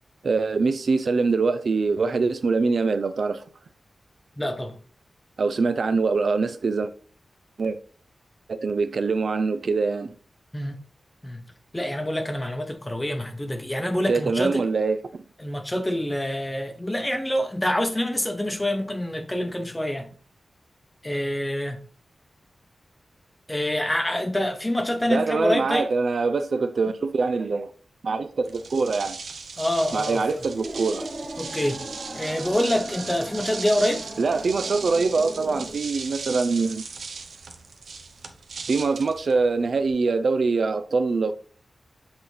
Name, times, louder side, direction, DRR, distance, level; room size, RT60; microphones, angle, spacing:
voice 1, 0.2-3.4 5.4-6.9 7.6-7.8 8.5-10.1 14.1-15.2 25.1-27.7 28.0-29.2 29.9-31.1 34.2-36.8 38.7-41.3, right 4 dB, 55° right, 0.4 m, -24 dB
voice 2, 4.4-4.8 10.5-10.8 11.2-11.4 11.7-14.6 15.4-20.1 21.0-21.8 23.5-25.9 29.6-30.2 31.4-31.8 32.1-34.0, left 1 dB, 10° left, 0.8 m, -26 dB
sound 1, 28.4-39.9, right 4 dB, 80° right, 0.8 m, -38 dB
sound 2, 29.7-35.7, right 1 dB, 25° right, 1.6 m, -38 dB
7.9 x 4.0 x 3.2 m
wide cardioid pair, 170°, 0 cm